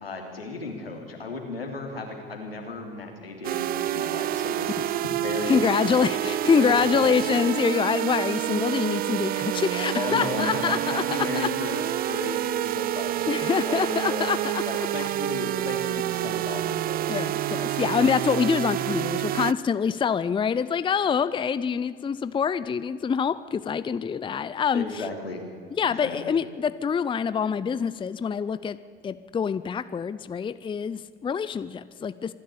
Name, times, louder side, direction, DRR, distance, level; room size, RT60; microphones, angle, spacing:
voice 1, 0.0-6.0 6.4-7.3 9.9-14.3 14.7-17.0 24.7-25.4 25.8-26.3, left 3 dB, 85° left, 2 dB, 3.2 m, -35 dB
sound 1, 3.4-19.5, right 13 dB, 30° right, 0.5 m, -28 dB
voice 2, 5.5-11.5 13.3-15.1 17.1-25.1 25.8-28.8 29.0-32.3, left 6 dB, 15° left, 15 dB, 0.6 m, -25 dB
25.5 x 11.5 x 8.8 m, 2.1 s
figure-of-eight pair, 70°, 29 cm